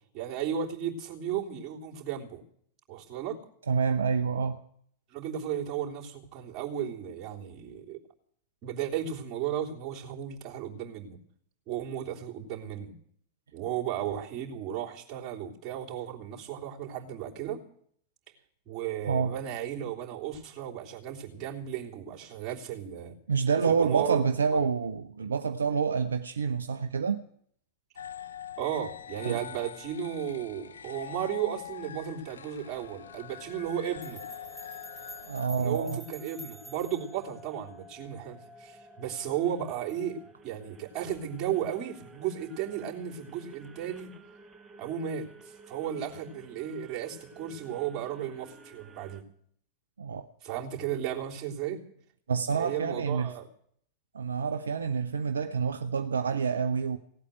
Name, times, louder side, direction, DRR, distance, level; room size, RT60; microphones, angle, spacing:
voice 1, 0.1-2.4 2.9-3.4 5.1-8.0 8.6-11.2 11.7-12.9 13.5-17.6 18.6-23.1 23.6-24.2 28.6-34.2 35.6-44.1 44.8-49.2 50.4-51.8 52.5-53.5, right 9 dB, 35° right, 3.4 m, -34 dB
voice 2, 3.7-4.6 19.1-19.4 23.3-27.2 29.2-29.4 35.2-36.0 50.0-50.3 52.3-53.3 54.1-57.0, right 6 dB, 70° right, 0.7 m, -28 dB
sound 1, 28.0-35.5, left 9 dB, 70° left, 0.8 m, -44 dB
sound 2, 32.6-49.2, right 1 dB, 15° right, 1.2 m, -53 dB
sound 3, 34.0-37.2, equal, 5° left, 3.8 m, -48 dB
17.5 x 8.4 x 9.3 m
figure-of-eight pair, 90°, 0 cm